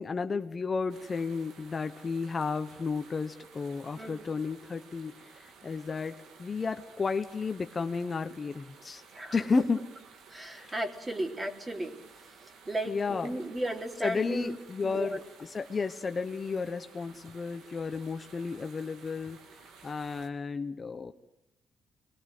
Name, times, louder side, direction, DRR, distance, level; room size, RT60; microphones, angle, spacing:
voice 1, 0.0-9.0 9.3-9.8 10.6-10.7 12.9-13.3 14.0-15.2 15.5-19.4 19.8-21.1, left 4 dB, 35° left, 8 dB, 1.1 m, -33 dB
sound 1, 0.9-20.3, right 5 dB, 80° right, 3.0 m, -55 dB
voice 2, 10.3-11.9 12.7-15.2, right 1 dB, 20° right, 3 dB, 3.7 m, -35 dB
25.5 x 20.5 x 7.8 m, 0.82 s
cardioid pair, 90°, 0 cm